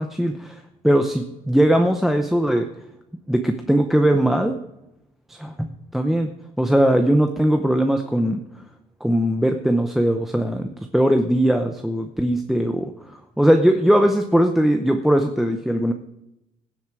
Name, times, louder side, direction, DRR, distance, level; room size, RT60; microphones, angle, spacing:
voice 1, 0.0-2.7 3.3-4.6 5.3-8.4 9.0-15.9, right 1 dB, ahead, 5 dB, 0.7 m, -20 dB
17.0 x 7.8 x 4.8 m, 0.88 s
cardioid pair, 145°, 16 cm